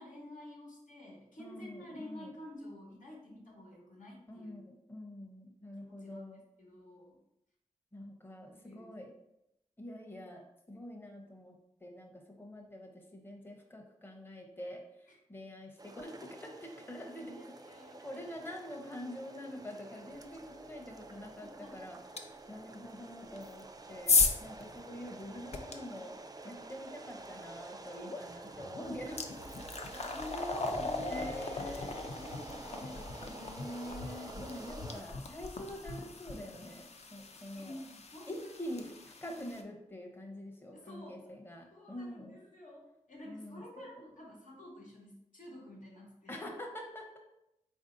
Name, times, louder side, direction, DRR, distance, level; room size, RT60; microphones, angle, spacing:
voice 1, 0.0-4.6 5.8-6.2 6.6-7.2 8.5-8.9 15.1-15.2 17.3-18.5 21.4-21.8 28.9-29.5 29.9-31.3 32.1-33.6 34.5-34.6 37.6-38.8 40.7-41.3 41.7-46.5, left 1 dB, 85° left, -2 dB, 1.2 m, -50 dB
voice 2, 1.4-2.3 4.3-6.4 7.9-9.1 9.8-11.5 11.8-14.8 15.3-17.4 17.7-22.0 22.5-26.1 26.4-29.2 30.8-32.0 33.3-37.8 38.3-38.9 39.2-42.4 43.2-43.9 46.3-47.2, left 1 dB, 15° left, 1 dB, 0.7 m, -45 dB
sound 1, 15.8-35.0, right 2 dB, 30° right, 0.4 m, -49 dB
sound 2, 22.2-22.3 23.3-25.7 28.0-28.2 28.6-39.6, left 4 dB, 55° left, 0.5 m, -36 dB
4.0 x 2.6 x 3.8 m, 0.86 s
wide cardioid pair, 60°, 13 cm